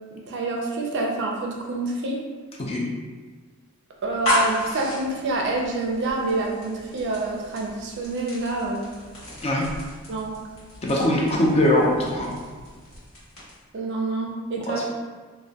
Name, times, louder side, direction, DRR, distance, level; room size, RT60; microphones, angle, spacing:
voice 1, 0.1-2.2 4.0-8.8 10.1-10.4 13.7-14.9, right 2 dB, 55° right, -1 dB, 0.4 m, -27 dB
sound 1, 4.0-13.7, left 1 dB, 65° left, 1.2 m, -33 dB
voice 2, 10.8-12.3 14.7-14.9, left 1 dB, 30° left, -3 dB, 0.4 m, -21 dB
2.2 x 2.1 x 2.6 m, 1.4 s
head